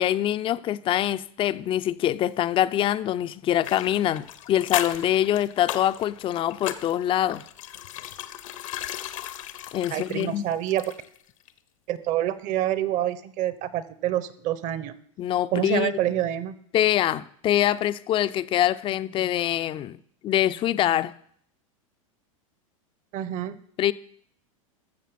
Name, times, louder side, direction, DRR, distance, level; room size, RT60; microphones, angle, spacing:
voice 1, 0.0-7.4 9.7-10.4 15.2-15.9 16.7-20.0 20.2-21.2 23.8-23.9, left 12 dB, 30° left, 0.5 m, -24 dB
sound 1, 3.6-11.2 11.5-11.6, left 12 dB, 70° left, 1.0 m, -36 dB
voice 2, 9.9-10.9 11.9-14.9 15.5-16.5 23.1-23.6, right 12 dB, 45° right, 1.0 m, -27 dB
14.0 x 6.8 x 5.9 m
hypercardioid pair, 105°, 17 cm